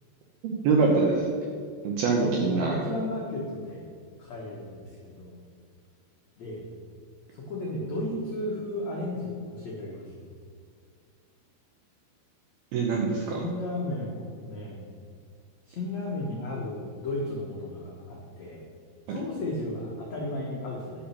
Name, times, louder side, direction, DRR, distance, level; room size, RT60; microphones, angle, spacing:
voice 1, 0.4-1.3 1.8-2.8 12.7-13.4 19.1-19.2, right 4 dB, 75° right, 0 dB, 2.3 m, -24 dB
voice 2, 2.2-3.8 4.2-5.4 6.4-6.7 7.3-10.1 13.2-14.9 15.6-18.7 19.1-21.1, left 1 dB, 80° left, -4 dB, 1.5 m, -34 dB
10.5 x 7.3 x 5.9 m, 2.2 s
omnidirectional pair, 5.6 m